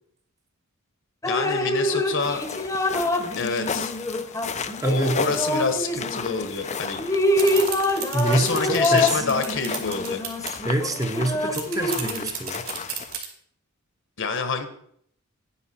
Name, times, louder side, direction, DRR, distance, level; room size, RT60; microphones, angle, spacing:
Drip, 1.2-6.5 6.9-12.3, left 1 dB, 15° left, 1.0 m, -26 dB
voice 1, 1.3-2.4 3.4-3.9 4.8-7.0 8.3-10.2 14.2-14.7, left 4 dB, 60° left, 8 dB, 1.3 m, -27 dB
sound 1, 2.2-13.2, left 6 dB, 30° left, 0.5 m, -34 dB
voice 2, 4.8-5.2 8.1-9.2 10.6-12.7, right 2 dB, 15° right, 5 dB, 0.8 m, -25 dB
sound 2, 7.4-10.6 11.0-11.1 11.3-13.2, right 9 dB, 65° right, 2.8 m, -32 dB
10.5 x 9.9 x 4.4 m, 0.66 s
head